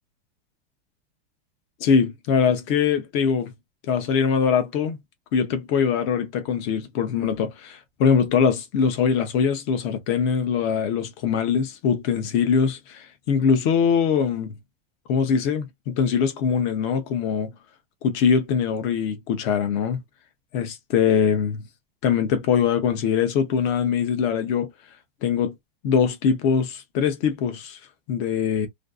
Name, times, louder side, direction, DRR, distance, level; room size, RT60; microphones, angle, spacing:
voice 1, 1.8-3.5 3.9-5.0 5.3-14.5 15.1-17.5 18.0-20.0 20.5-21.6 22.0-24.7 25.2-25.5 25.8-27.8 28.1-28.7, left 6 dB, 30° left, 0.5 m, -22 dB
2.5 x 2.3 x 2.3 m
supercardioid pair, 170°, 29 cm